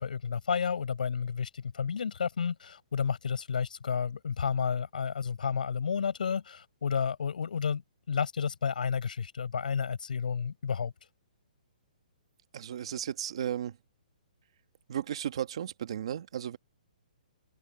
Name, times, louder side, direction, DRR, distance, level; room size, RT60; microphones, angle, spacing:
voice 1, 0.0-10.9, left 6 dB, 70° left, 7.4 m, -31 dB
voice 2, 12.5-13.8 14.9-16.6, right 10 dB, 40° right, 1.4 m, -34 dB
open air
hypercardioid pair, 180°, 5 cm